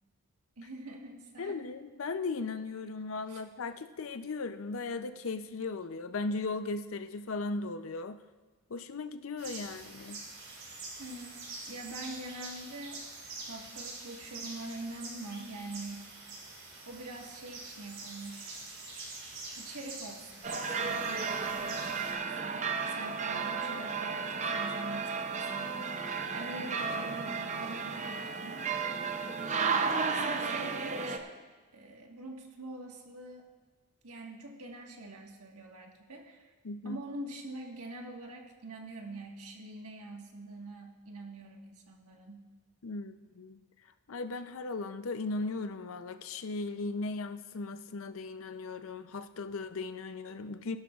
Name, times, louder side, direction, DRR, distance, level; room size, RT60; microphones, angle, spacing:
voice 1, 0.6-1.6 3.3-3.4 11.0-13.0 13.4-16.0 16.9-18.6 19.5-25.8 26.3-28.7 29.4-33.4 34.0-36.5 36.8-42.4, right 2 dB, 85° right, 1 dB, 1.5 m, -45 dB
voice 2, 1.4-8.2 8.7-10.2 36.6-37.0 42.8-43.6 44.1-50.8, left 3 dB, 65° left, 10 dB, 0.5 m, -37 dB
sound 1, 9.4-22.1, right 3 dB, 60° right, 3.4 m, -45 dB
sound 2, 20.4-31.2, right 5 dB, 30° right, 0.6 m, -33 dB
17.0 x 12.0 x 2.4 m, 1.3 s
head